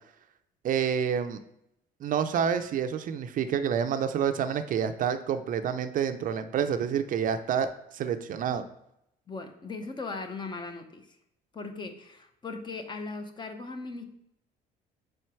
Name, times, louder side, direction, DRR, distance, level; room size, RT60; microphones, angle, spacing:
voice 1, 0.6-1.4 2.0-7.7 7.9-8.6, right 8 dB, 55° right, 9 dB, 0.5 m, -28 dB
voice 2, 9.3-11.2 11.5-14.0, left 3 dB, 25° left, 6 dB, 0.7 m, -38 dB
4.9 x 4.4 x 4.6 m, 0.77 s
cardioid pair, 110°, 17 cm